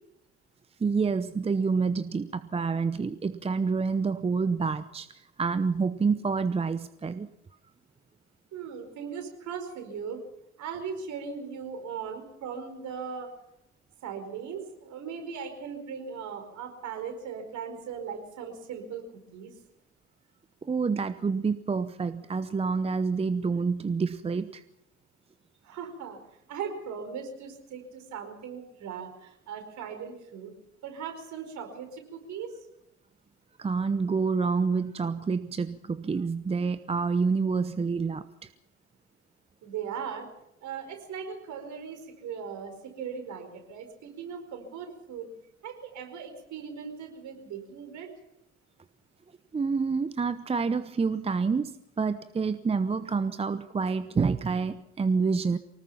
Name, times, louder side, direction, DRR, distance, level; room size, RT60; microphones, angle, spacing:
voice 1, 0.8-7.3 20.6-24.6 33.6-38.5 49.5-55.6, right 5 dB, 15° right, 14 dB, 0.8 m, -28 dB
voice 2, 8.5-10.2 10.6-13.3 14.0-19.5 25.6-26.2 26.5-30.5 30.8-32.6 39.6-40.3 40.6-45.3 45.6-48.1, right 6 dB, 50° right, 5 dB, 4.9 m, -38 dB
24.5 x 19.0 x 5.8 m, 0.85 s
figure-of-eight pair, 60°, 36 cm